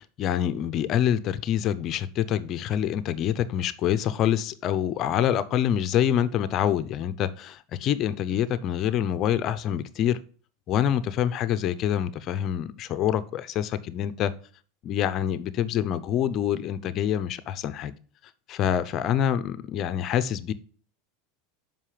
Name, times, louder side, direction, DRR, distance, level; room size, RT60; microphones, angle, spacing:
voice 1, 0.0-10.2 10.7-14.3 14.8-17.9 18.5-20.5, left 10 dB, 40° left, 0.6 m, -26 dB
7.5 x 5.4 x 4.9 m
supercardioid pair, 125°, 0 cm